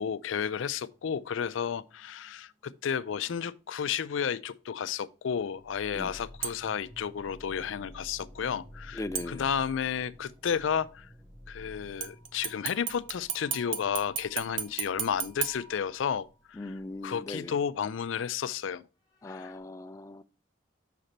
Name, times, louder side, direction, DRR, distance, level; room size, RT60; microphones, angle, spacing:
voice 1, 0.0-11.1 11.5-16.7 17.0-18.8 19.2-19.6, left 7 dB, 90° left, 0.4 m, -32 dB
sound 1, 0.8-3.5 5.5-17.0 17.2-17.3 19.0-19.6, equal, ahead, 2.1 m, -52 dB
sound 2, 6.4-6.9 9.1-9.9 12.0-16.4 16.8-16.9, right 8 dB, 80° right, 0.8 m, -37 dB
voice 2, 8.9-9.4 16.6-17.6 19.2-20.2, left 2 dB, 15° left, 0.3 m, -39 dB
6.6 x 5.0 x 4.2 m
head